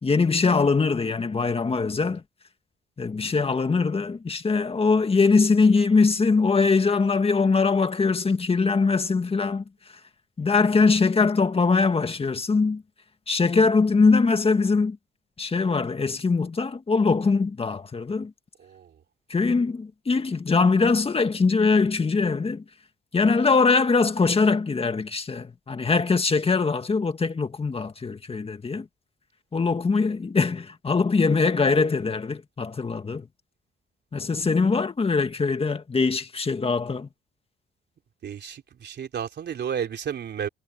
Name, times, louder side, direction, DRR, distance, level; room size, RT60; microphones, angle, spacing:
voice 1, 0.0-2.2 3.0-9.6 10.4-12.8 13.3-15.0 15.4-18.3 19.3-22.6 23.1-28.9 29.5-33.3 34.1-37.1, left 4 dB, 30° left, 2.0 m, -22 dB
voice 2, 38.2-40.5, right 8 dB, 60° right, 3.9 m, -32 dB
cardioid pair, 90°, 20 cm